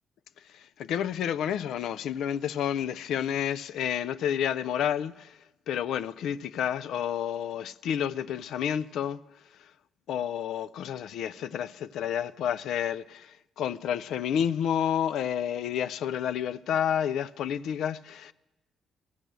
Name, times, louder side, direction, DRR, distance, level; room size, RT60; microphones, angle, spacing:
voice 1, 0.5-5.4 5.7-9.2 9.6-9.7 10.1-18.3, left 9 dB, 80° left, 0.3 m, -30 dB
14.5 x 6.1 x 7.9 m
cardioid pair, 90°, 0 cm